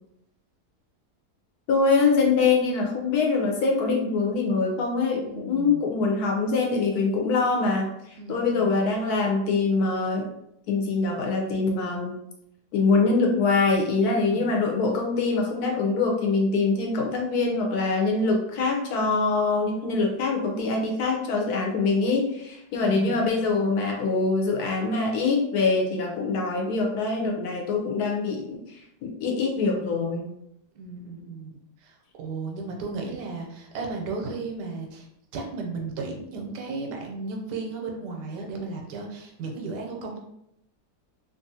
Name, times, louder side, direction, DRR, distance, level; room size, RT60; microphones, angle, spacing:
voice 1, 1.7-10.3 10.7-12.1 12.7-30.3, left 4 dB, 75° left, 0 dB, 1.1 m, -24 dB
voice 2, 5.2-5.9 8.1-8.8 14.0-14.6 22.8-23.6 30.7-35.1 35.3-40.2, right 3 dB, 90° right, 1 dB, 1.2 m, -35 dB
2.9 x 2.4 x 2.6 m, 0.80 s
omnidirectional pair, 1.8 m